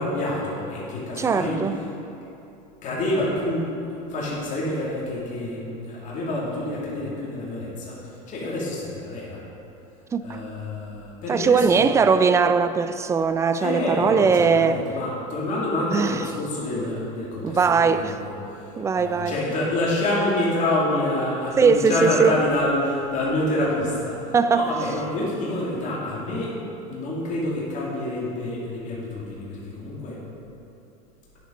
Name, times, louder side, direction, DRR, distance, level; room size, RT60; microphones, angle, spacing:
voice 1, 0.0-1.6 2.8-9.4 10.2-11.9 13.6-26.6 26.9-30.2, left 1 dB, 40° left, 2.6 m, -27 dB
voice 2, 1.2-1.8 10.1-10.4 11.3-14.8 15.9-16.2 17.4-18.1 18.8-19.3 21.6-22.3 24.3-24.7, right 5 dB, 15° right, 0.4 m, -20 dB
10.0 x 7.3 x 5.1 m
supercardioid pair, 125°, 19 cm